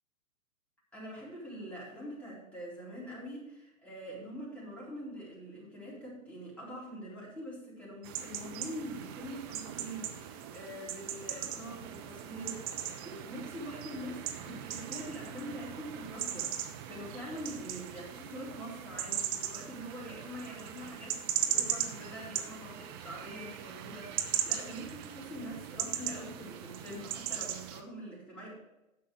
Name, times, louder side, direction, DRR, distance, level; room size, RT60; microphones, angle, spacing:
voice 1, 0.9-21.2 21.5-28.5, equal, 5° left, -7 dB, 4.0 m, -44 dB
sound 1, 8.0-27.8, right 10 dB, 20° right, 0.4 m, -38 dB
10.0 x 6.7 x 4.8 m, 0.95 s
hypercardioid pair, 120°, 41 cm